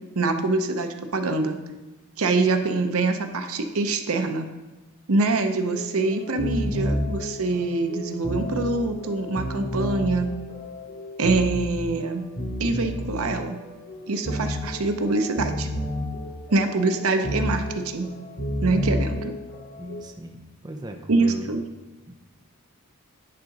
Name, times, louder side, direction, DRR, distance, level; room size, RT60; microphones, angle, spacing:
voice 1, 0.2-1.6 2.2-4.5 5.1-10.3 11.2-12.3 12.6-13.6 14.1-15.7 16.5-18.1 18.6-19.3 21.1-21.6, right 3 dB, 75° right, 6 dB, 0.7 m, -24 dB
sound 1, 5.7-20.0, equal, 90° left, 2.4 m, -31 dB
voice 2, 19.8-21.5 22.1-22.2, right 1 dB, 20° right, 3 dB, 0.6 m, -38 dB
10.5 x 3.8 x 5.3 m, 1.1 s
head